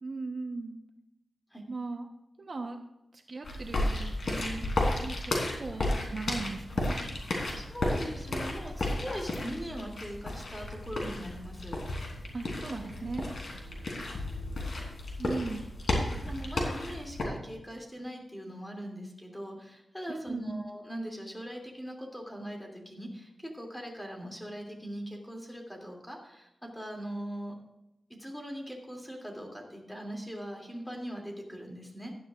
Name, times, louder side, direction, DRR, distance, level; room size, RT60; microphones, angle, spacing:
voice 1, 0.0-0.7 1.7-2.1 2.4-2.8 3.1-4.7 5.0-7.0 12.3-13.3 15.2-15.7 20.1-20.7, right 3 dB, 45° right, 3 dB, 1.0 m, -38 dB
sound 1, 3.4-17.2, left 1 dB, 65° left, 3.2 m, -33 dB
voice 2, 7.2-11.8 16.2-27.5 28.1-32.1, equal, 5° left, 0 dB, 2.7 m, -41 dB
17.0 x 11.5 x 2.5 m, 0.89 s
wide cardioid pair, 110°, 0 cm